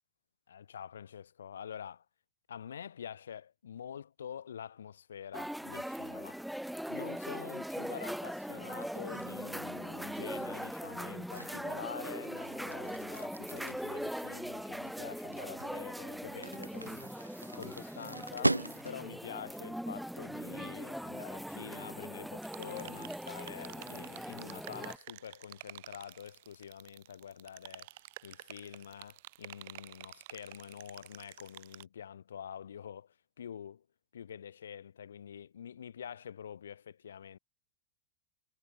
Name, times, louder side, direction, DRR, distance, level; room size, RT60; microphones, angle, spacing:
voice 1, 0.5-2.1 2.5-6.4 6.9-33.8 34.1-37.4, left 8 dB, 65° left, 0.5 m, -47 dB
sound 1, 5.3-25.0, equal, ahead, 0.6 m, -41 dB
sound 2, 8.8-19.2, right 1 dB, 85° right, 1.0 m, -40 dB
sound 3, 22.4-31.8, right 20 dB, 50° right, 0.5 m, -51 dB
figure-of-eight pair, 90°, 0 cm